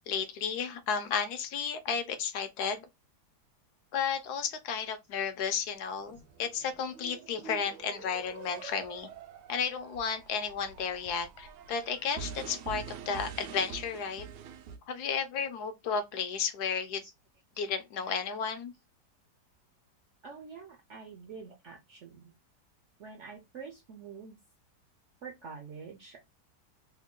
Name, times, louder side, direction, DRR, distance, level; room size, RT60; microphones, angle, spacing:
voice 1, 0.1-2.8 3.9-9.1 9.5-14.2 14.9-17.0 17.6-18.7, left 6 dB, 75° left, 1.1 m, -33 dB
sound 1, 6.0-14.8, right 7 dB, 85° right, 1.2 m, -46 dB
voice 2, 20.2-22.3 23.0-24.4 25.2-26.2, right 5 dB, 65° right, 0.7 m, -46 dB
3.3 x 2.2 x 3.6 m
omnidirectional pair, 1.8 m